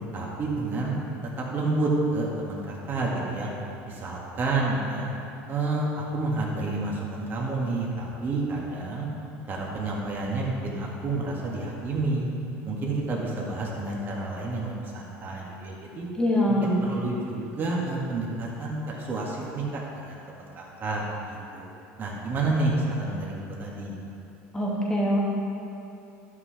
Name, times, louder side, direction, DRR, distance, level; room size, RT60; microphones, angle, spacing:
voice 1, 0.1-1.0 1.4-3.5 3.9-5.1 5.5-9.1 9.5-12.3 12.6-16.1 16.5-21.7 22.0-23.9, right 2 dB, 35° right, -3 dB, 1.9 m, -29 dB
voice 2, 16.2-16.7 24.5-25.2, left 1 dB, 10° left, -5 dB, 1.9 m, -23 dB
12.0 x 5.9 x 3.4 m, 2.9 s
supercardioid pair, 110°, 6 cm